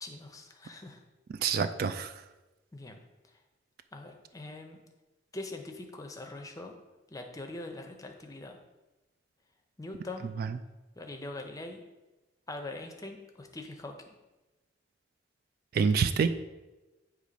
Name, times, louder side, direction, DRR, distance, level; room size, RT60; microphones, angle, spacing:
voice 1, 0.0-1.0 2.7-3.0 3.3-3.4 3.9-4.8 5.3-6.7 7.1-8.6 9.8-10.3 11.0-11.8 12.5-14.0, left 2 dB, 20° left, 4 dB, 0.6 m, -42 dB
voice 2, 1.4-2.1 10.4-10.6 15.7-16.3, right 6 dB, 55° right, 10 dB, 0.3 m, -27 dB
8.2 x 3.1 x 5.1 m, 1.1 s
head